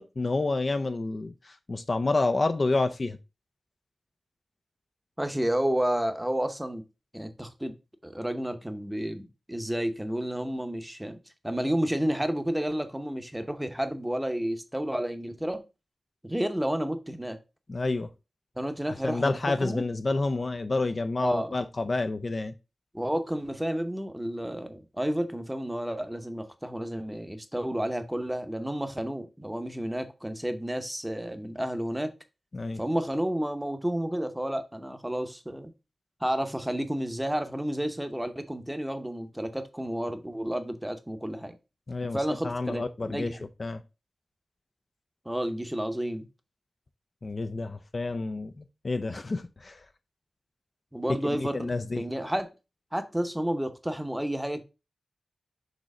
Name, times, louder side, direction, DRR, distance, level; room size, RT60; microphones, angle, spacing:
voice 1, 0.0-3.2 17.7-18.1 19.0-22.5 32.5-32.8 41.9-42.2 42.4-43.8 47.2-49.8 51.2-52.0, left 3 dB, 40° left, 0.4 m, -29 dB
voice 2, 5.2-6.8 7.1-7.7 8.0-11.2 11.4-15.6 16.2-17.4 18.6-19.8 21.2-21.5 22.9-32.1 32.8-35.7 36.2-41.6 42.1-43.4 45.2-46.3 50.9-52.5 52.9-54.6, right 1 dB, 5° right, 0.8 m, -31 dB
6.5 x 3.1 x 4.8 m
wide cardioid pair, 110°, 0 cm